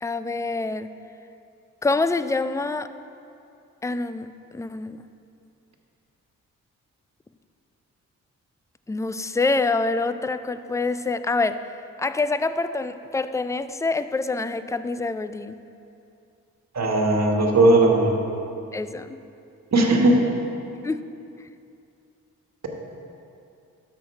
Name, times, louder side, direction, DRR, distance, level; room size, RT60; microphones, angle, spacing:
voice 1, 0.0-0.9 1.8-2.9 3.8-4.3 4.5-5.0 8.9-11.6 12.0-15.6 18.7-19.2 20.8-21.0, left 3 dB, 10° left, 12 dB, 0.3 m, -26 dB
voice 2, 16.7-18.1 19.7-20.2, right 2 dB, 45° right, 1 dB, 1.5 m, -17 dB
12.5 x 4.5 x 4.7 m, 2.6 s
supercardioid pair, 45°, 35 cm